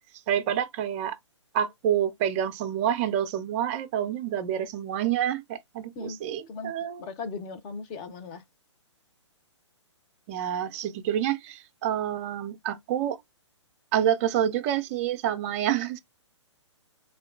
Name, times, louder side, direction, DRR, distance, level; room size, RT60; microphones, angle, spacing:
voice 1, 0.3-1.2 1.5-7.1 10.3-13.2 13.9-16.0, right 10 dB, 30° right, 0.4 m, -28 dB
voice 2, 7.0-8.4, left 4 dB, 25° left, 0.6 m, -37 dB
3.5 x 2.2 x 2.3 m
hypercardioid pair, 135°, 15 cm